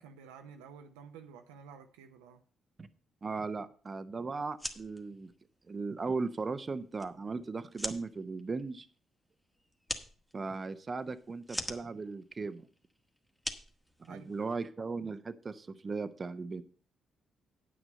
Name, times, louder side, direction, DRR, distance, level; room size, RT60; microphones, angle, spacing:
voice 1, 0.0-2.4 14.1-14.3, right 6 dB, 85° right, 6 dB, 0.7 m, -51 dB
voice 2, 3.2-5.3 5.7-8.9 10.3-12.7 14.0-16.6, right 4 dB, 40° right, 12 dB, 0.7 m, -37 dB
sound 1, 4.4-14.6, equal, 5° left, 1.5 m, -44 dB
9.2 x 6.3 x 6.3 m, 0.41 s
hypercardioid pair, 45°, 0 cm